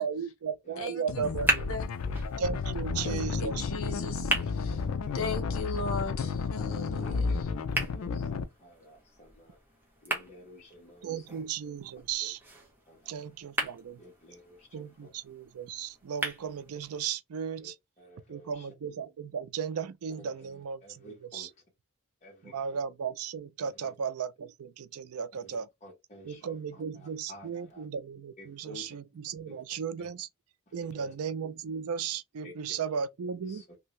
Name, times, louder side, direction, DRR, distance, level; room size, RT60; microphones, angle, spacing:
voice 1, 0.0-1.7 2.4-3.6 11.0-12.4 13.1-14.0 14.7-17.7 18.3-21.5 22.4-25.6 26.2-30.3 30.7-33.6, right 6 dB, 90° right, 0.4 m, -35 dB
voice 2, 0.8-1.2 1.7-1.9 3.0-4.8 5.1-7.4, left 4 dB, 65° left, 0.8 m, -37 dB
sound 1, 1.0-17.0, right 2 dB, 10° right, 0.9 m, -38 dB
sound 2, 1.1-8.4, left 4 dB, 80° left, 0.4 m, -32 dB
voice 3, 2.9-3.3 3.8-4.5 4.8-5.6 7.0-11.3 12.9-13.3 14.0-15.1 17.6-17.7 18.0-18.7 19.8-19.9 20.2-21.6 22.2-22.8 23.6-23.9 25.4-27.9 28.4-29.0 29.5-29.6 30.0-30.1 30.7-31.1 32.4-32.5 33.4-33.8, left 1 dB, 35° left, 1.4 m, -52 dB
2.7 x 2.7 x 3.1 m
head